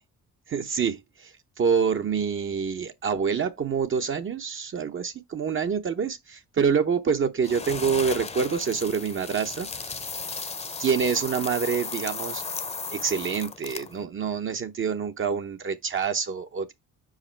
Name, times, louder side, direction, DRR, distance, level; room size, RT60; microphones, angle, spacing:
voice 1, 0.5-10.0 10.8-12.4 12.9-16.7, right 6 dB, 40° right, 0.8 m, -27 dB
sound 1, 7.4-14.0, left 4 dB, 20° left, 0.7 m, -35 dB
5.1 x 4.9 x 4.4 m
cardioid pair, 90°, 30 cm